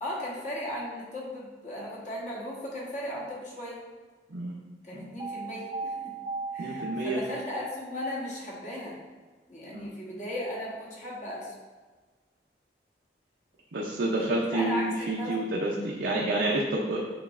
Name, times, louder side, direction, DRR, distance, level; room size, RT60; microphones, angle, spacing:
voice 1, 0.0-3.8 4.8-6.1 6.5-9.0 9.5-11.5 14.2-15.4 15.7-15.9, left 1 dB, 45° left, -5 dB, 1.2 m, -36 dB
sound 1, 5.2-6.8, right 4 dB, 25° right, 0.6 m, -36 dB
voice 2, 6.6-7.2 9.7-9.9 13.7-17.0, right 2 dB, 75° right, -3 dB, 0.6 m, -29 dB
6.8 x 3.0 x 2.5 m, 1.4 s
head